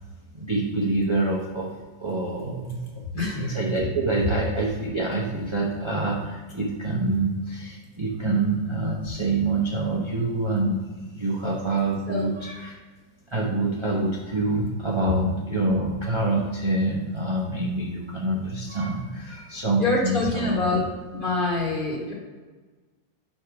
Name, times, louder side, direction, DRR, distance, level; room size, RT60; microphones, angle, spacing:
voice 1, 0.3-1.7 2.0-2.8 3.1-12.7 13.3-20.8, right 2 dB, 25° right, -4 dB, 0.7 m, -26 dB
voice 2, 3.1-3.5 12.1-12.3 19.8-20.9 21.2-22.1, left 2 dB, 35° left, -4 dB, 1.7 m, -25 dB
5.0 x 4.2 x 5.8 m, 1.3 s
omnidirectional pair, 1.6 m